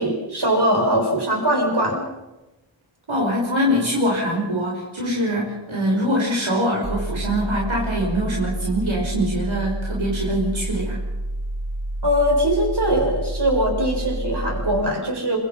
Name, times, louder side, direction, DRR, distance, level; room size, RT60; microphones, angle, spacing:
voice 1, 0.0-2.1 12.0-15.4, equal, 55° right, 1 dB, 7.3 m, -21 dB
voice 2, 3.1-11.0, equal, 75° right, -2 dB, 5.7 m, -23 dB
sound 1, 6.8-14.8, right 1 dB, 20° right, 3.1 m, -29 dB
26.0 x 24.0 x 5.7 m, 1.1 s
wide cardioid pair, 45°, 48 cm